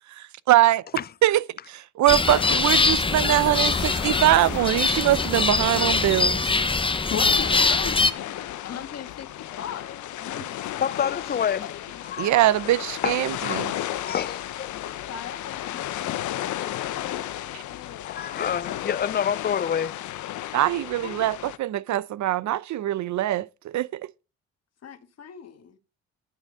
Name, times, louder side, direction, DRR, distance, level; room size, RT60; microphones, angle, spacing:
voice 1, 0.1-0.8 1.2-6.5 12.2-13.7 17.5-17.6 20.5-24.0, right 14 dB, 70° right, 0.7 m, -23 dB
sound 1, 2.1-8.1, left 3 dB, 15° left, 0.9 m, -23 dB
sound 2, 2.3-21.6, left 13 dB, 75° left, 0.8 m, -34 dB
voice 2, 3.2-4.1 7.0-7.1 10.8-11.8 12.0-12.5 13.0-14.8 16.6-16.8 18.0-19.9, left 8 dB, 35° left, 0.4 m, -29 dB
voice 3, 7.1-10.8 11.6-12.0 14.8-18.2 21.0-21.3 24.8-25.8, left 8 dB, 55° left, 1.7 m, -38 dB
12.0 x 6.4 x 5.4 m
cardioid pair, 90°, 30 cm